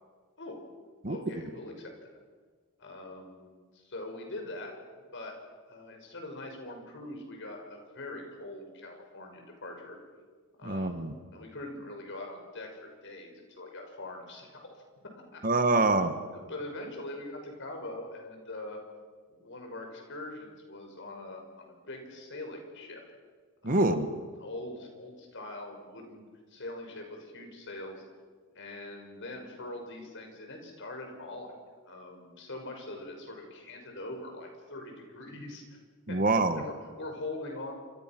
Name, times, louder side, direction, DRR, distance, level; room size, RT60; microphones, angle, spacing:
voice 1, 1.1-1.9 2.8-4.7 5.1-5.3 5.7-10.0 10.6-14.7 15.3-15.4 16.5-18.8 19.3-23.0 23.6-24.1 24.4-28.0 28.5-31.5 31.9-35.8 36.1-36.2 36.6-37.7, left 2 dB, 55° left, 3 dB, 5.9 m, -42 dB
voice 2, 10.6-11.1 15.4-16.1 23.6-24.1 36.1-36.6, right 2 dB, 40° right, 9 dB, 1.5 m, -25 dB
28.0 x 26.5 x 6.1 m, 1.5 s
head